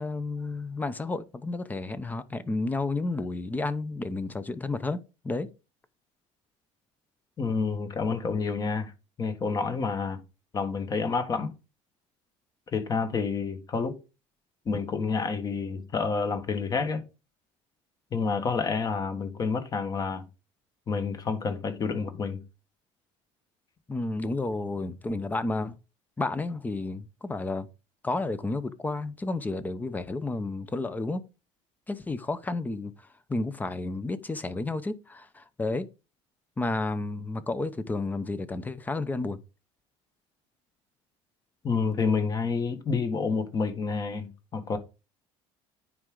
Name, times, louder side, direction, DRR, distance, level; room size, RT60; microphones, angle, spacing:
voice 1, 0.0-5.5 23.9-25.8 26.2-27.7 28.0-31.2 31.9-32.9 33.3-35.9 36.6-39.4, left 2 dB, 15° left, 0.7 m, -31 dB
voice 2, 7.4-8.9 9.2-10.2 10.5-11.5 12.7-14.0 14.6-17.0 18.1-20.2 20.9-22.4 41.6-44.8, left 5 dB, 30° left, 1.4 m, -29 dB
9.6 x 4.7 x 3.9 m
cardioid pair, 140°, 13 cm